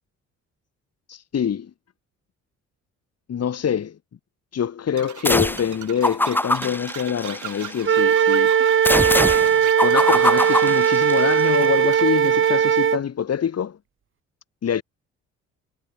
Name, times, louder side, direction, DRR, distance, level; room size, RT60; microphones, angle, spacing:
voice 1, 1.1-1.7 3.3-4.0 4.5-8.5 9.8-13.8 14.6-14.8, left 8 dB, 55° left, 6.0 m, -25 dB
sound 1, 5.0-12.7, right 12 dB, 75° right, 4.4 m, -39 dB
sound 2, 5.3-5.7 6.0-7.8 8.9-11.5, left 1 dB, 5° left, 1.2 m, -23 dB
Wind instrument woodwind instrument, 7.8-13.0, right 8 dB, 40° right, 1.2 m, -18 dB
cardioid pair, 90°, 30 cm